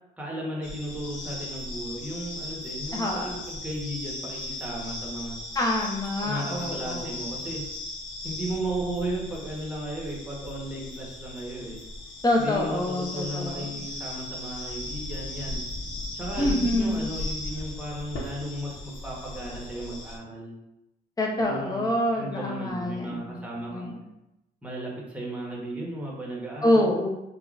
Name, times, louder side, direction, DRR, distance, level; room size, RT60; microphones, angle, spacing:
voice 1, 0.2-5.4 6.2-7.6 8.2-11.8 12.4-15.6 16.1-20.6 21.4-24.0 24.6-26.9, right 1 dB, 5° right, -4 dB, 1.0 m, -35 dB
sound 1, 0.6-20.2, left 2 dB, 70° left, 0.8 m, -37 dB
voice 2, 2.9-3.4 5.5-7.1 12.2-13.9 16.4-17.1 21.2-24.1 26.6-27.1, left 1 dB, 20° left, -1 dB, 0.6 m, -26 dB
3.5 x 2.2 x 2.4 m, 0.91 s
cardioid pair, 90°, 20 cm